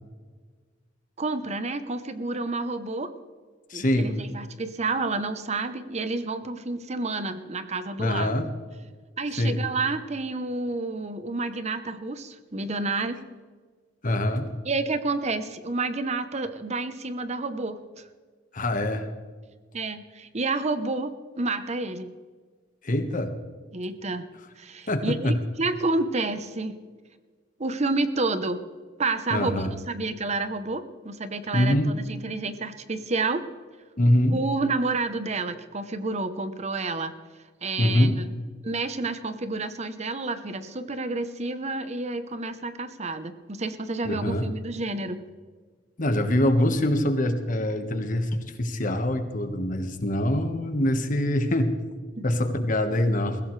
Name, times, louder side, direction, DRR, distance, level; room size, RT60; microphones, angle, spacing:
voice 1, 1.2-3.1 3.7-8.4 9.2-13.2 14.6-18.0 19.7-22.1 23.7-24.3 24.6-26.8 27.6-28.7 29.0-33.4 34.3-37.1 37.6-38.3 38.6-45.2 52.2-52.3, right 3 dB, 35° right, 11 dB, 0.9 m, -29 dB
voice 2, 3.7-4.1 8.0-8.5 9.4-9.6 14.0-14.5 18.5-19.1 22.8-23.3 24.9-25.4 29.3-29.7 31.5-31.9 34.0-34.4 37.8-38.2 44.0-44.5 46.0-51.7 52.2-53.4, left 1 dB, 45° left, 7 dB, 1.5 m, -24 dB
21.0 x 16.0 x 3.3 m, 1.5 s
head